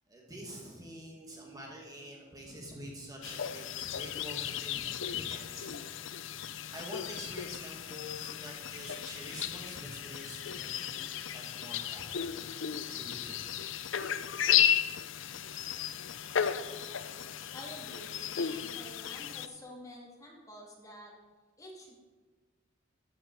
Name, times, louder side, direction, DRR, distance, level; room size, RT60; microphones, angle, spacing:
voice 1, 0.1-5.7 6.5-11.1 11.3-12.0 12.9-13.7, equal, 20° right, -2 dB, 2.2 m, -46 dB
sound 1, 3.2-19.5, left 9 dB, 70° left, 0.6 m, -34 dB
voice 2, 17.5-21.1 21.6-21.9, equal, 15° left, -2 dB, 2.6 m, -49 dB
14.0 x 9.5 x 4.8 m, 1.4 s
head